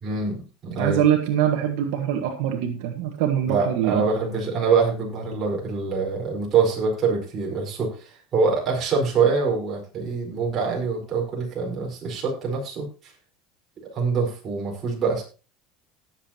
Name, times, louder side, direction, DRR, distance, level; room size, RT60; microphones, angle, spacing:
voice 1, 0.0-1.0 3.5-13.1 13.9-15.2, right 5 dB, 25° right, -2 dB, 4.7 m, -25 dB
voice 2, 0.8-4.0, right 10 dB, 70° right, 4 dB, 1.6 m, -23 dB
18.5 x 7.6 x 2.9 m, 0.34 s
cardioid pair, 170°, 0 cm